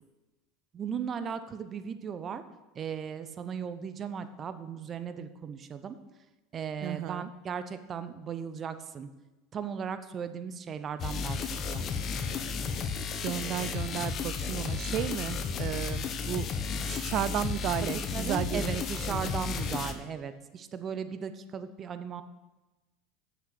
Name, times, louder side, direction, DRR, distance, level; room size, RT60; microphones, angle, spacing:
voice 1, 0.7-2.4 2.7-6.0 6.5-9.1 9.5-11.8 17.8-22.2, right 7 dB, 35° right, 11 dB, 0.8 m, -37 dB
voice 2, 6.8-7.3 13.2-16.5 16.9-18.8 19.1-19.3, right 13 dB, 50° right, 16 dB, 0.3 m, -34 dB
sound 1, 11.0-19.9, left 5 dB, 40° left, 1.0 m, -33 dB
7.4 x 6.7 x 6.6 m, 1.1 s
hypercardioid pair, 85°, 0 cm